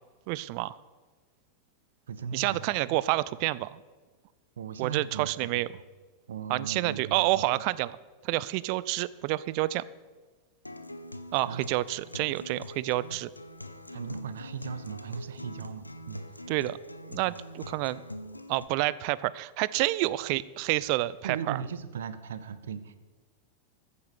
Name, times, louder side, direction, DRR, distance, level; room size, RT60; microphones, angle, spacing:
voice 1, 0.3-0.8 2.3-3.8 4.8-5.7 6.5-8.0 8.2-9.8 11.3-13.3 16.5-16.8 17.1-18.0 18.5-21.6, right 18 dB, 45° right, 19 dB, 0.4 m, -29 dB
voice 2, 2.1-3.0 4.6-5.3 6.3-7.6 11.4-11.6 13.9-16.2 17.2-17.4 21.2-23.0, right 7 dB, 65° right, 13 dB, 0.8 m, -38 dB
Acoustic guitar, 10.6-18.6, left 1 dB, 85° left, 0.7 m, -43 dB
14.0 x 7.0 x 6.6 m, 1.4 s
figure-of-eight pair, 90°, 0 cm